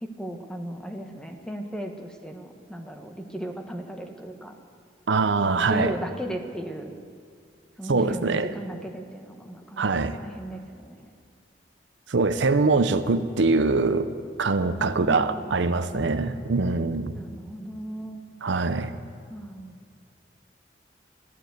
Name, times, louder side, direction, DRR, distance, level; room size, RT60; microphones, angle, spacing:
voice 1, 0.0-4.5 5.4-6.9 7.8-11.1 12.7-13.4 14.6-16.4 17.2-18.2 19.3-19.8, right 1 dB, 5° left, 4 dB, 1.1 m, -36 dB
voice 2, 5.1-5.9 7.9-8.5 9.8-10.2 12.1-14.1 14.4-17.2 18.4-18.9, right 3 dB, 85° right, 10 dB, 0.7 m, -23 dB
13.5 x 12.0 x 8.0 m, 2.3 s
head